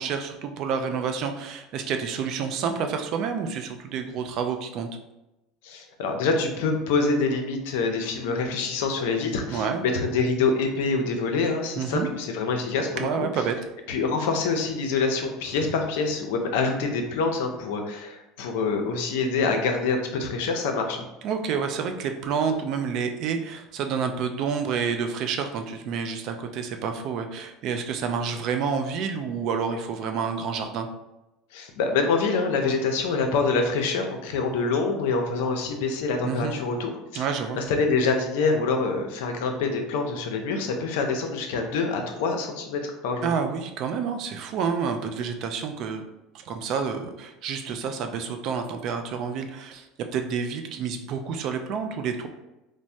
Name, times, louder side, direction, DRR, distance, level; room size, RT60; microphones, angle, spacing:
voice 1, 0.0-4.9 9.5-9.8 11.8-12.1 13.0-13.6 21.2-30.9 36.2-36.6 37.1-37.6 43.2-46.0 46.5-49.9 50.1-52.3, right 6 dB, 60° right, 6 dB, 0.4 m, -29 dB
voice 2, 5.6-13.3 13.9-21.1 31.5-37.3 37.5-43.3, left 4 dB, 75° left, 4 dB, 0.5 m, -26 dB
3.1 x 2.0 x 2.6 m, 0.96 s
hypercardioid pair, 80°, 0 cm